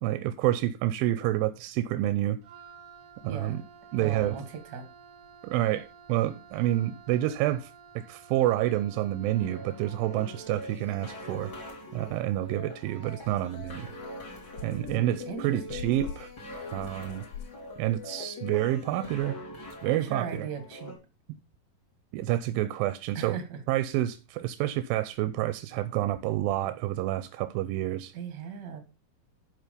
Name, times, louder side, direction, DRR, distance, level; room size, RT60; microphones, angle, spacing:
voice 1, 0.0-2.4 3.2-3.6 3.9-4.4 5.4-7.7 8.0-11.5 11.9-13.9 14.6-16.3 16.7-17.2 17.8-19.4 19.8-20.5 22.1-23.4 23.7-28.1, right 14 dB, 90° right, 2.3 m, -28 dB
Wind instrument woodwind instrument, 2.4-10.6, right 7 dB, 65° right, 1.7 m, -52 dB
voice 2, 3.3-3.6 4.0-4.9 14.8-15.9 19.9-20.9 23.1-23.6 28.1-28.8, right 5 dB, 45° right, 1.5 m, -38 dB
sound 1, 9.3-20.9, left 2 dB, 30° left, 3.2 m, -43 dB
sound 2, 12.4-12.5 13.0-18.0, left 7 dB, 75° left, 2.6 m, -46 dB
11.0 x 4.5 x 5.1 m
omnidirectional pair, 4.0 m